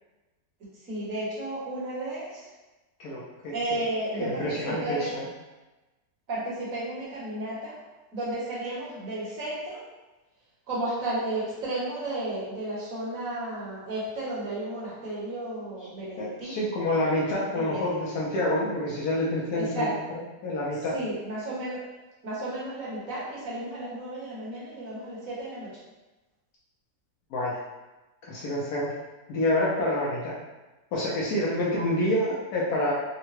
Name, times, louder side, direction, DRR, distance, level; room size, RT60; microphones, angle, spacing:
voice 1, 0.8-2.5 3.5-5.1 6.3-7.8 8.1-9.8 10.7-16.6 17.5-18.0 19.5-19.9 20.9-21.8 22.2-25.7, right 1 dB, 60° right, -7 dB, 1.4 m, -33 dB
voice 2, 3.0-3.5 4.2-5.3 16.2-19.9 20.4-20.9 27.3-27.6 28.3-29.0 29.3-30.3 30.9-32.9, left 1 dB, 75° left, -5 dB, 1.1 m, -27 dB
3.6 x 2.1 x 2.9 m, 1.1 s
omnidirectional pair, 1.7 m